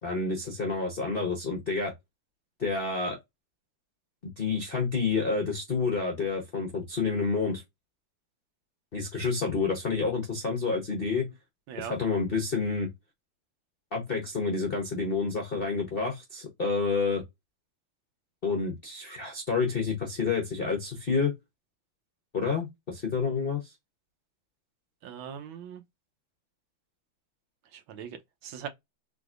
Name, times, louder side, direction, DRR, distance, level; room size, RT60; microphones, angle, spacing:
voice 1, 0.0-1.9 2.6-3.2 4.4-7.6 8.9-11.3 11.8-12.9 13.9-17.2 18.4-21.3 22.3-23.7, left 4 dB, 50° left, 0.6 m, -29 dB
voice 2, 25.0-25.8 27.7-28.7, right 8 dB, 75° right, 1.5 m, -40 dB
3.7 x 3.6 x 2.4 m
omnidirectional pair, 2.3 m